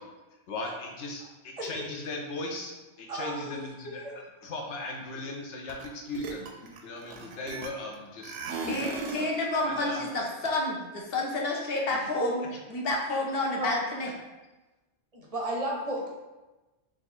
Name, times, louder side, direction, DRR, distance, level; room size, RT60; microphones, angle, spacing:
voice 1, 0.5-9.3 9.6-10.0 14.0-14.1, left 2 dB, 80° left, 1 dB, 1.0 m, -38 dB
voice 2, 3.1-3.6 3.8-4.1 12.2-12.3 13.5-13.8 15.1-16.1, right 1 dB, 40° right, -2 dB, 0.6 m, -33 dB
sound 1, 5.7-5.9 6.1-7.9 8.2-9.4, right 3 dB, 85° right, 0.9 m, -36 dB
voice 3, 8.7-12.4 12.7-14.1, left 2 dB, 60° left, -1 dB, 0.9 m, -30 dB
3.7 x 2.4 x 4.2 m, 1.1 s
omnidirectional pair, 1.2 m